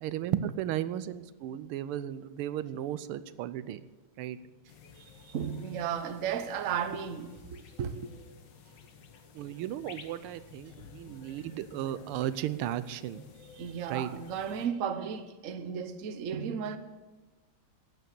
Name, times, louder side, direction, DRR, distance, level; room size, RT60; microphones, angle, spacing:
voice 1, 0.0-3.8 4.2-4.4 9.3-13.2 13.9-14.1, right 12 dB, 90° right, 1.5 m, -35 dB
sound 1, 4.7-14.7, left 6 dB, 60° left, 1.7 m, -53 dB
voice 2, 4.9-8.1 13.5-16.8, right 7 dB, 55° right, 0.9 m, -34 dB
12.5 x 9.1 x 6.8 m
omnidirectional pair, 2.4 m